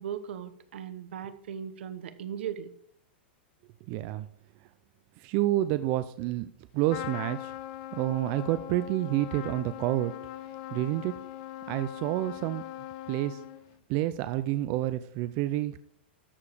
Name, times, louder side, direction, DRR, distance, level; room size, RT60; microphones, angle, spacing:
voice 1, 0.0-2.7, right 8 dB, 75° right, 11 dB, 1.0 m, -38 dB
voice 2, 3.9-4.3 5.2-6.5 6.7-7.5 7.9-10.1 10.7-11.2 11.7-12.6 13.1-13.4 13.9-15.8, right 15 dB, 40° right, 12 dB, 0.4 m, -29 dB
Trumpet, 6.9-13.8, left 14 dB, 50° left, 0.6 m, -41 dB
13.0 x 4.9 x 4.9 m, 0.66 s
supercardioid pair, 145°, 6 cm